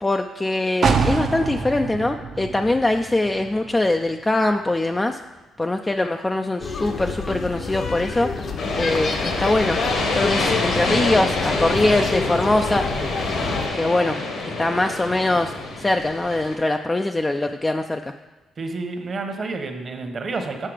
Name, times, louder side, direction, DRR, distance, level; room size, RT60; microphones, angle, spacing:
voice 1, 0.0-5.2 5.6-8.3 8.7-9.8 10.1-12.8 13.7-14.2 14.4-18.0, left 2 dB, 15° left, 5 dB, 0.3 m, -22 dB
sound 1, 0.8-4.6 4.9-5.0, right 5 dB, 60° right, 0.7 m, -26 dB
city park Tel Aviv, 6.6-13.7, left 4 dB, 50° left, 0.8 m, -28 dB
sound 2, 8.6-16.5, left 2 dB, 70° left, 1.5 m, -27 dB
voice 2, 18.6-20.7, right 3 dB, 45° right, 5 dB, 1.1 m, -29 dB
7.5 x 5.7 x 4.9 m, 1.2 s
cardioid pair, 90°, 0 cm